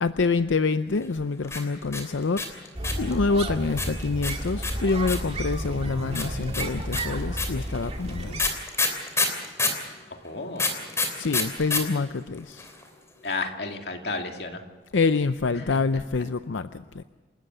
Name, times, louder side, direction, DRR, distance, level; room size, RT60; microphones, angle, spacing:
voice 1, 0.0-2.4 3.0-8.4 11.1-12.7 14.9-17.0, left 4 dB, 85° left, 11 dB, 0.6 m, -26 dB
sound 1, 1.4-3.1 3.8-5.4 6.1-9.8 10.6-11.8 12.1-12.2 12.3-12.8, left 3 dB, 15° left, 3.2 m, -27 dB
sound 2, 2.7-8.5, right 1 dB, 35° right, 2.2 m, -32 dB
voice 2, 10.2-10.8 13.2-14.6 15.5-15.8, left 3 dB, 60° left, 4 dB, 2.4 m, -32 dB
28.5 x 13.5 x 7.9 m, 1.4 s
head